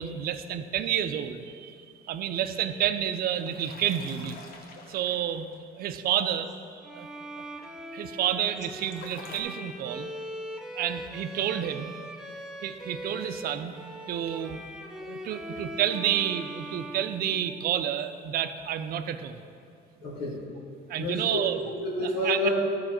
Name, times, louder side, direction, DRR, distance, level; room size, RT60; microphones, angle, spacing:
voice 1, 0.0-1.8 2.0-4.4 4.9-5.5 5.8-6.5 6.9-7.1 7.9-10.1 10.7-11.9 12.6-13.8 14.1-14.6 15.1-19.4 20.2-20.3 20.9-21.6 22.0-22.4, right 10 dB, 60° right, 10 dB, 0.6 m, -29 dB
sound 1, 3.2-5.6 8.2-9.4, left 3 dB, 60° left, 1.1 m, -47 dB
Bowed string instrument, 6.8-17.8, equal, 5° right, 0.7 m, -41 dB
voice 2, 20.0-20.4 21.0-22.5, left 2 dB, 85° left, -6 dB, 1.9 m, -30 dB
13.0 x 5.7 x 4.4 m, 2.4 s
cardioid pair, 110°, 17 cm